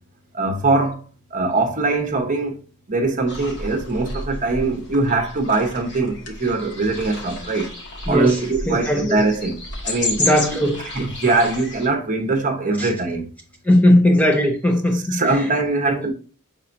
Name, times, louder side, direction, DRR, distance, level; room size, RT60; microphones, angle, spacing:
voice 1, 0.3-1.0 1.3-2.6 2.9-7.7 8.1-9.6 9.8-10.2 10.9-13.3 14.9-16.1, right 3 dB, 35° right, 0.8 m, -22 dB
sound 1, 3.3-11.9, left 2 dB, 55° left, 1.2 m, -31 dB
voice 2, 8.1-8.4 8.7-9.2 10.2-10.8 12.8-12.9 13.7-15.2 15.9-16.0, left 1 dB, 5° left, 0.5 m, -18 dB
5.5 x 3.7 x 2.5 m
head